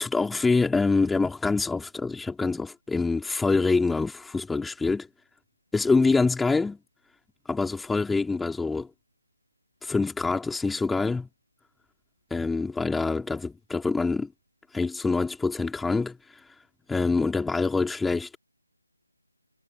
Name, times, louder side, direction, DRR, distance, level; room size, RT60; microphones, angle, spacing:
voice 1, 0.0-5.1 5.7-6.8 7.5-8.9 9.8-11.3 12.3-14.3 14.7-16.2 16.9-18.4, left 3 dB, 5° left, 4.5 m, -25 dB
figure-of-eight pair, 155°, 0 cm